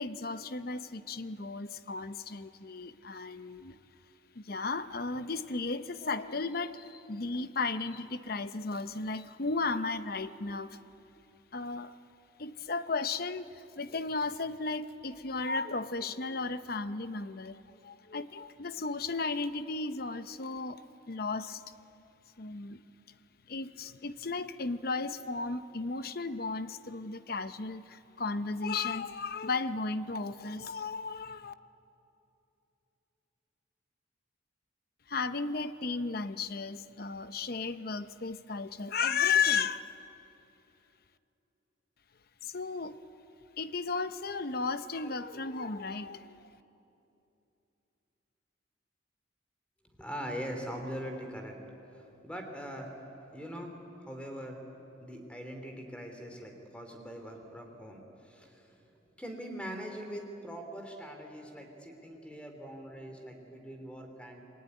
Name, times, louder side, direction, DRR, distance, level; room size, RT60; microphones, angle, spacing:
voice 1, 0.0-3.8 4.3-10.8 11.5-12.0 12.4-20.8 21.1-21.6 22.4-22.8 23.5-31.5 35.1-39.8 42.4-43.0 43.6-46.5, left 4 dB, 50° left, 12 dB, 0.8 m, -34 dB
voice 2, 50.0-51.6 51.9-54.6 55.0-58.8 59.2-64.4, equal, 5° left, 4 dB, 3.1 m, -42 dB
27.0 x 21.5 x 9.8 m, 2.9 s
head